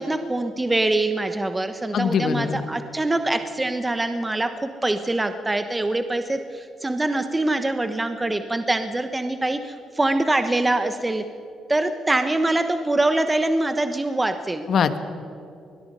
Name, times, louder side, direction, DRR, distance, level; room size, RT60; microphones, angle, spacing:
voice 1, 0.0-11.2 11.7-14.6, right 2 dB, 15° right, 8 dB, 1.1 m, -24 dB
voice 2, 1.9-2.6 14.7-15.0, left 7 dB, 60° left, 10 dB, 1.4 m, -22 dB
25.0 x 21.0 x 5.6 m, 2.7 s
cardioid pair, 80°, 0 cm